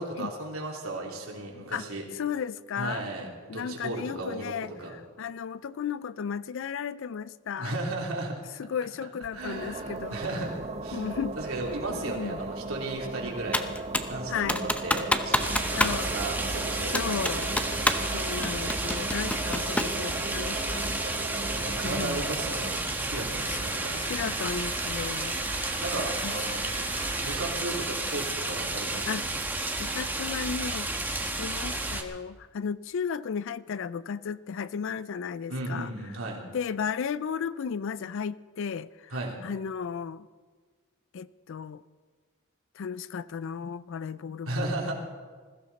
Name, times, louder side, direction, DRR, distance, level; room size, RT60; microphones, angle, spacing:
voice 1, 0.0-2.1 2.7-4.9 7.6-8.4 9.3-11.1 11.4-13.7 14.1-15.8 16.1-17.4 21.6-24.0 25.8-26.6 27.2-29.2 35.5-36.4 39.1-39.4 44.4-44.9, right 2 dB, 85° right, -1 dB, 3.1 m, -35 dB
voice 2, 2.1-3.0 3.5-7.7 8.6-10.2 10.9-11.5 11.9-12.4 14.3-14.6 15.8-16.1 16.9-17.5 18.1-20.8 21.8-22.2 23.5-23.6 24.1-25.4 26.2-26.3 29.1-29.3 29.8-30.9 31.4-35.9 36.5-39.1 39.4-40.3 41.1-41.8 42.8-44.7, left 6 dB, 60° left, 17 dB, 0.4 m, -34 dB
sound 1, 9.2-27.6, right 3 dB, 30° right, 0.7 m, -38 dB
Computer keyboard, 13.5-14.2 14.5-16.0 16.3-16.4 16.9-18.1 18.4-20.0, left 1 dB, 5° left, 0.7 m, -27 dB
sound 2, 15.4-32.0, right 2 dB, 10° right, 1.2 m, -32 dB
20.5 x 15.0 x 4.1 m, 1.5 s
head